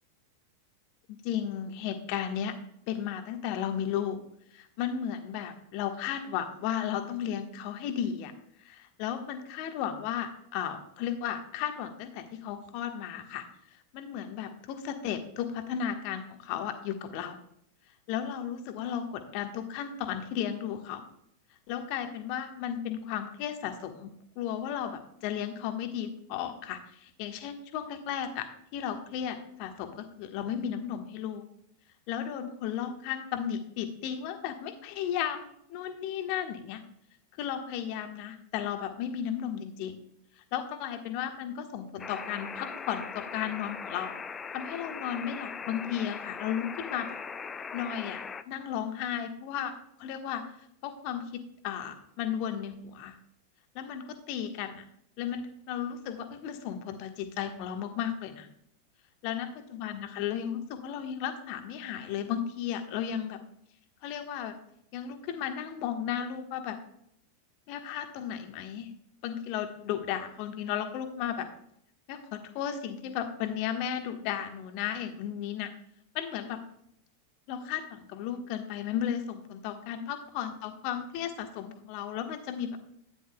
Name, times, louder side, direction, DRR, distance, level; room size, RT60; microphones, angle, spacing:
voice 1, 1.2-2.5 2.9-4.2 4.5-8.3 8.6-13.4 13.9-17.4 18.1-21.0 21.7-24.1 24.3-28.5 28.7-31.4 32.1-36.8 37.4-40.0 40.5-44.1 44.5-47.1 47.7-48.2 48.5-49.7 50.0-50.4 50.8-51.2 51.6-53.2 53.7-54.8 55.2-58.5 59.2-63.4 64.0-64.5 64.9-66.8 67.7-68.9 69.2-71.5 72.1-75.7 76.1-76.6 77.5-82.9, left 9 dB, 45° left, 7 dB, 1.2 m, -34 dB
sound 1, 42.0-48.4, left 6 dB, 20° left, 0.5 m, -40 dB
13.0 x 10.0 x 2.2 m, 0.71 s
figure-of-eight pair, 90°, 0 cm